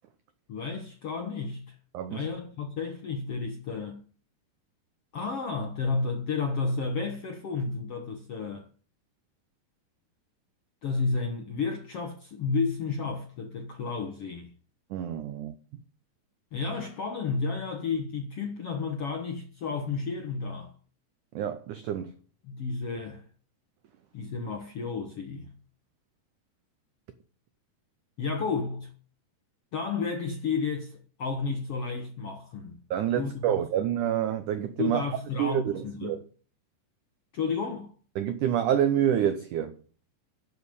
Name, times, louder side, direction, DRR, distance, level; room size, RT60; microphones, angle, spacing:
voice 1, 0.5-1.8 2.1-4.0 5.1-8.6 10.8-14.5 16.5-20.7 22.4-23.2 24.1-25.5 28.2-28.9 29.7-32.8 33.1-33.6 34.8-36.2 37.3-37.9, left 4 dB, 60° left, 1.5 m, -32 dB
voice 2, 1.9-2.3 14.9-15.6 21.3-22.1 32.9-35.0 35.4-36.2 38.2-39.8, right 10 dB, 85° right, 1.7 m, -27 dB
12.5 x 7.0 x 8.3 m
omnidirectional pair, 4.8 m